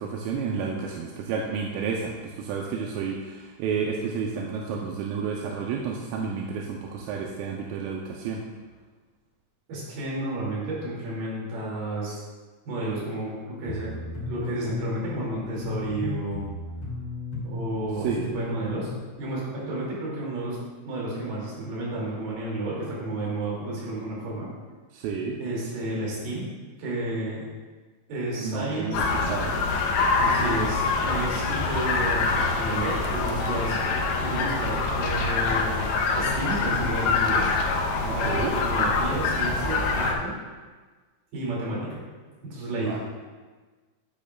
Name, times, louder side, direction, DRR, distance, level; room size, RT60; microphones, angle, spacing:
voice 1, 0.0-8.4 18.0-18.3 24.9-25.4 28.4-29.6 38.0-38.5 42.8-43.0, right 5 dB, 85° right, -1 dB, 3.2 m, -31 dB
voice 2, 9.7-12.2 12.7-16.5 17.4-18.9 19.2-20.6 20.9-24.5 25.4-26.5 26.8-27.5 28.1-29.0 30.1-33.8 34.2-37.5 38.1-40.3 41.3-42.0 42.4-43.0, right 2 dB, 55° right, -6 dB, 4.0 m, -31 dB
sound 1, 13.6-19.0, left 4 dB, 40° left, 2.8 m, -35 dB
sound 2, 28.9-40.1, left 4 dB, 80° left, 2.7 m, -25 dB
10.5 x 8.5 x 2.3 m, 1.4 s
omnidirectional pair, 5.8 m